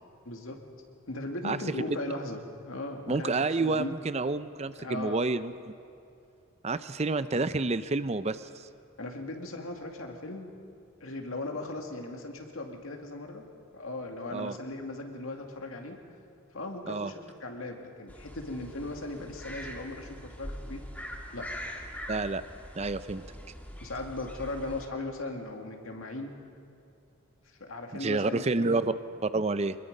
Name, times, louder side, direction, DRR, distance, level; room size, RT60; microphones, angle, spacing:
voice 1, 0.3-0.6 1.1-3.3 3.6-3.9 4.8-5.2 9.0-10.5 11.0-13.4 13.7-16.0 16.5-20.8 21.3-21.5 23.8-26.3 27.6-28.7, left 2 dB, 70° left, 3 dB, 2.3 m, -38 dB
voice 2, 3.1-5.7 6.6-8.7 14.3-14.6 16.8-17.1 22.1-22.4 22.8-23.2 28.0-28.9 29.2-29.8, right 3 dB, 30° right, 13 dB, 0.5 m, -29 dB
sound 1, 18.1-24.9, equal, 5° left, 2.0 m, -43 dB
25.5 x 21.0 x 5.4 m, 2.5 s
head